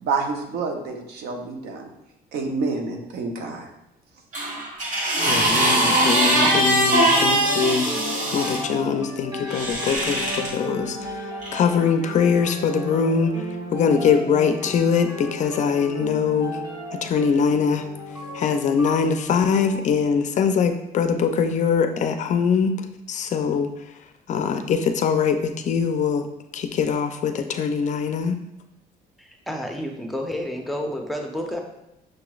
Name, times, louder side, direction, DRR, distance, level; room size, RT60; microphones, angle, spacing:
voice 1, 0.0-1.9 2.3-3.7, right 4 dB, 70° right, 3 dB, 0.7 m, -28 dB
sound 1, 4.3-8.6 9.5-10.5 11.4-11.6, right 1 dB, 50° right, 1.2 m, -21 dB
sound 2, 5.1-19.7, left 1 dB, 25° right, 1.0 m, -34 dB
voice 2, 5.2-7.9 8.3-11.0 11.5-13.3 13.7-16.6 17.0-17.8 18.3-22.7 23.1-23.7 24.3-25.4 25.7-26.3 26.5-28.4, left 6 dB, 45° left, 8 dB, 0.4 m, -22 dB
voice 3, 29.2-31.6, equal, ahead, 1 dB, 0.6 m, -30 dB
6.2 x 3.0 x 2.3 m, 0.87 s
cardioid pair, 110°, 17 cm